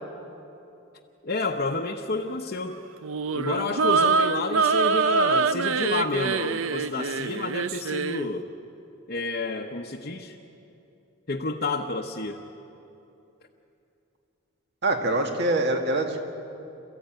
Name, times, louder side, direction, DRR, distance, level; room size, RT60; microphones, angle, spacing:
voice 1, 1.2-2.8 3.3-8.5 9.1-10.4 11.3-12.4, left 3 dB, 45° left, 0 dB, 0.9 m, -30 dB
sound 1, 3.0-8.3, right 5 dB, 70° right, 0.6 m, -24 dB
voice 2, 14.8-16.2, right 2 dB, 55° right, 3 dB, 2.1 m, -24 dB
28.0 x 14.5 x 9.1 m, 2.9 s
head